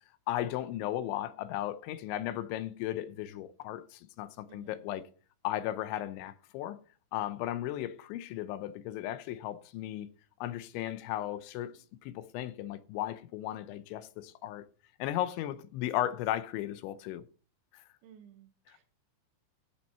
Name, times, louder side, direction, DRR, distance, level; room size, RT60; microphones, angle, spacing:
voice 1, 0.3-5.0 5.4-6.8 7.1-10.1 10.4-14.6 15.0-17.2 17.7-17.8 18.7-18.8, left 13 dB, 80° left, 3.0 m, -36 dB
voice 2, 4.5-4.9 18.0-18.9, right 8 dB, 75° right, 3.9 m, -56 dB
15.5 x 5.8 x 4.4 m
omnidirectional pair, 5.5 m